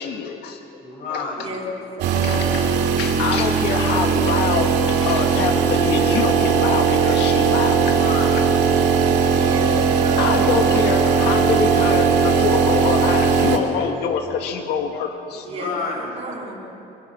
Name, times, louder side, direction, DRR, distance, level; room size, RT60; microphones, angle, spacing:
voice 1, 0.0-0.6 1.1-1.3 2.1-8.0 8.3-8.5 9.8-15.5, left 6 dB, 80° left, 5 dB, 1.8 m, -25 dB
voice 2, 0.8-1.6 7.8-8.5 15.4-16.2, left 3 dB, 55° left, -1 dB, 6.6 m, -30 dB
voice 3, 2.0-2.6 9.3-10.5 15.3-15.8 16.2-16.5, right 1 dB, 35° right, -6 dB, 5.5 m, -33 dB
sound 1, 2.0-13.6, right 6 dB, 85° right, 2.5 m, -18 dB
22.5 x 22.5 x 6.2 m, 2.7 s
cardioid pair, 110°, 17 cm